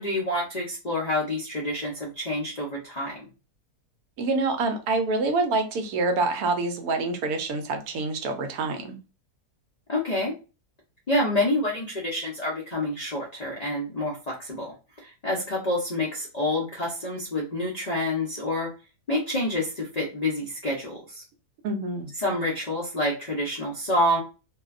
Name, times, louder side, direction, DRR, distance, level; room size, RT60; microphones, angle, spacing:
voice 1, 0.0-3.3 9.9-10.3 11.1-18.7 19.1-21.2 22.2-24.2, left 1 dB, 60° left, -3 dB, 0.4 m, -28 dB
voice 2, 4.2-9.0 21.6-22.1, right 3 dB, 75° right, 5 dB, 1.0 m, -26 dB
2.6 x 2.2 x 2.4 m, 0.32 s
omnidirectional pair, 1.6 m